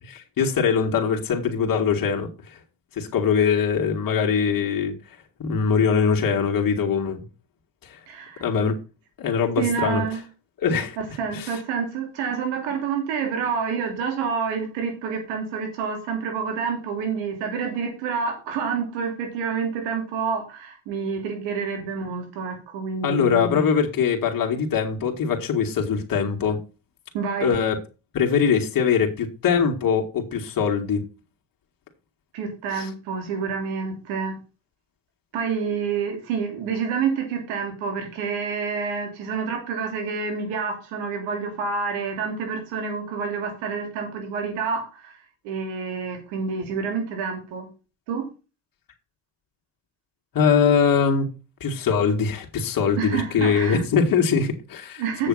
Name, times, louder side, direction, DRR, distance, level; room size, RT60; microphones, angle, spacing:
voice 1, 0.0-2.6 2.9-4.9 5.4-7.2 7.8-8.0 8.4-8.8 9.2-10.0 10.6-11.0 11.3-11.6 23.0-26.6 27.4-27.8 28.1-31.1 32.7-32.9 50.3-51.3 51.6-55.3, left 6 dB, 50° left, 2.4 m, -22 dB
voice 2, 8.1-8.4 9.6-10.2 11.0-23.7 27.1-27.5 32.3-34.3 35.3-45.2 45.4-47.7 48.1-48.2 53.0-53.8 55.0-55.3, right 5 dB, 85° right, 3.2 m, -28 dB
7.8 x 6.5 x 5.6 m
supercardioid pair, 80°, 44 cm